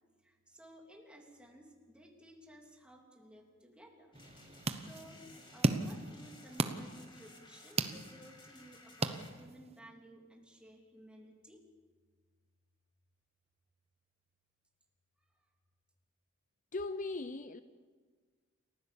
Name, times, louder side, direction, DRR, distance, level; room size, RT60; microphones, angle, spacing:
voice 1, 0.2-4.1 4.9-5.2 5.5-11.6, right 1 dB, 5° right, 0 dB, 3.2 m, -56 dB
sound 1, 4.1-9.3, left 2 dB, 25° left, 2.8 m, -58 dB
sound 2, 4.1-9.8, right 3 dB, 30° right, 0.9 m, -37 dB
voice 2, 16.7-17.6, left 3 dB, 40° left, 12 dB, 0.6 m, -38 dB
29.0 x 15.0 x 7.1 m, 1.5 s
head